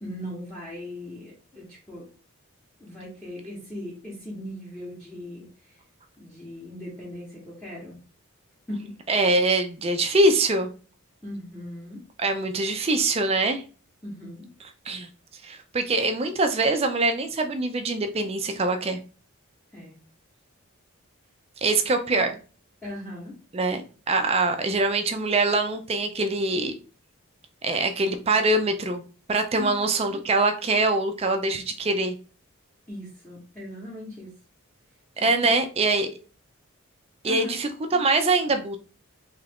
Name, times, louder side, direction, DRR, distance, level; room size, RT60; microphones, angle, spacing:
voice 1, 0.0-2.1 2.8-5.5 6.2-8.0 8.7-8.9 11.2-12.0 14.0-14.5 19.7-20.0 22.8-23.3 29.6-29.8 30.1-30.2 32.9-34.3 35.1-35.3 37.3-37.6, left 1 dB, 5° left, -7 dB, 0.8 m, -38 dB
voice 2, 9.1-10.7 12.2-13.6 14.9-15.1 15.4-19.0 21.6-22.4 23.5-23.8 24.1-26.7 27.6-29.0 29.3-32.2 35.2-36.1 37.2-38.8, right 2 dB, 25° right, 7 dB, 0.4 m, -23 dB
3.2 x 2.4 x 3.4 m, 0.36 s
head